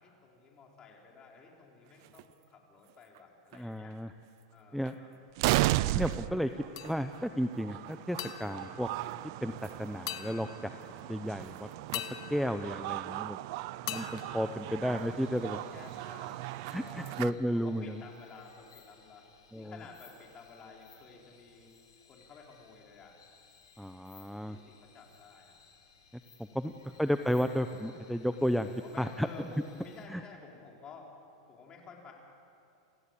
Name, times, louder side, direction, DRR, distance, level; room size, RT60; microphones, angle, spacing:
voice 1, 0.0-4.0 4.5-5.1 14.6-15.2 15.7-16.4 16.7-17.2 17.5-19.3 19.5-23.2 24.5-25.6 26.5-26.9 28.7-31.1 31.5-32.1, left 4 dB, 30° left, -1 dB, 5.3 m, -53 dB
sound 1, 2.0-2.2 3.2-3.3 3.5-3.6 4.9-5.0 5.4-17.3, right 18 dB, 60° right, 0.6 m, -36 dB
voice 2, 3.5-4.1 4.7-4.9 5.9-6.5 6.8-8.9 9.4-10.7 11.1-11.7 12.3-13.4 13.9-15.6 16.7-17.8 19.5-19.7 23.8-24.6 26.5-26.7 27.0-28.7 29.0-29.3 30.1-30.2, equal, ahead, 8 dB, 0.8 m, -32 dB
sound 2, 6.8-7.4 8.2-9.6 10.1-11.1 11.9-13.4 13.9-15.3, left 13 dB, 65° left, 1.4 m, -43 dB
sound 3, 15.0-30.1, left 6 dB, 85° left, 5.9 m, -62 dB
28.0 x 16.0 x 8.6 m, 2.6 s
hypercardioid pair, 125°, 3 cm